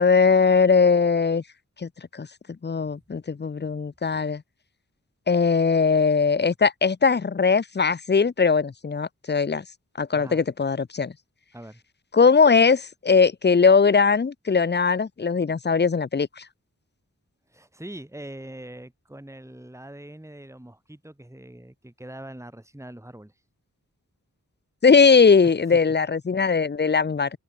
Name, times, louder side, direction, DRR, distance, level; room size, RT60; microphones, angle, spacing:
voice 1, 0.0-1.4 1.8-2.3 2.6-4.4 5.3-9.6 10.0-11.1 12.1-16.4 24.8-27.3, left 5 dB, 30° left, 0.6 m, -20 dB
voice 2, 10.1-10.4 11.5-11.8 17.5-23.3 25.4-25.8, right 1 dB, 10° right, 2.4 m, -42 dB
open air
wide cardioid pair, 65°, 33 cm